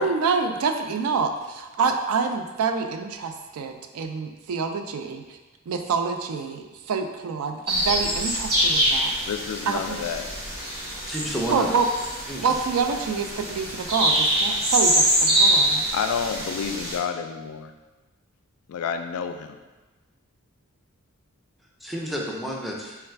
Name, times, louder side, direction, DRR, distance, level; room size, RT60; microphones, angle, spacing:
voice 1, 0.0-5.4 5.7-9.1 9.7-10.0 11.5-11.8 12.4-15.9, right 5 dB, 70° right, 6 dB, 0.4 m, -27 dB
sound 1, 7.7-17.0, right 1 dB, 45° right, 1.1 m, -24 dB
voice 2, 9.3-10.3 15.9-17.7 18.7-19.6, left 7 dB, 70° left, 8 dB, 0.3 m, -29 dB
voice 3, 11.1-11.7 12.3-12.6 21.8-23.0, equal, ahead, -2 dB, 0.4 m, -30 dB
3.2 x 2.4 x 4.4 m, 1.2 s
head